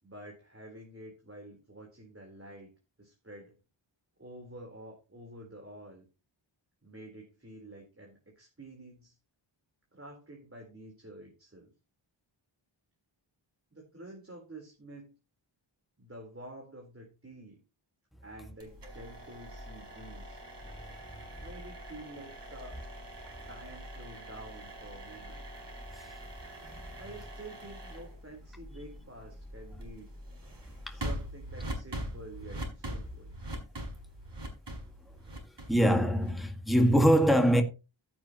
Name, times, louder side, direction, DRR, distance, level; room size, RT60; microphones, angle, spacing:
voice 1, 0.0-2.7 3.0-3.6 4.2-6.1 6.8-9.2 9.9-11.7 13.7-15.1 16.0-17.6 18.2-20.4 21.4-22.8 23.5-25.5 27.0-30.1 30.8-33.4, right 1 dB, 25° right, 4.0 m, -49 dB
sound 1, 18.6-36.5, equal, 60° right, 5.5 m, -43 dB
voice 2, 35.7-37.6, equal, ahead, 1.8 m, -23 dB
15.5 x 8.5 x 3.0 m
wide cardioid pair, 90°, 48 cm